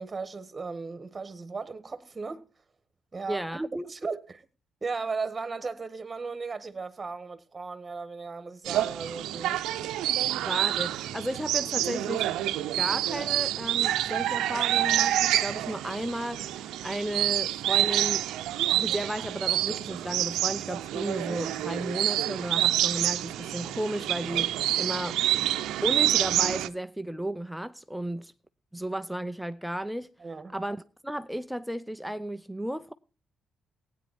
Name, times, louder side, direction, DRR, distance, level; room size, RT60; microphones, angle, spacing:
voice 1, 0.0-2.5 3.1-4.4 4.8-9.7 30.2-30.5, right 4 dB, 25° right, 1.7 m, -36 dB
voice 2, 3.3-3.6 10.3-12.3 12.6-18.2 18.7-25.4 25.8-28.3 28.7-30.1 30.5-32.9, right 1 dB, ahead, 0.6 m, -34 dB
sound 1, 8.6-26.7, right 13 dB, 90° right, 0.7 m, -27 dB
16.5 x 9.6 x 4.3 m
cardioid pair, 90°, 0 cm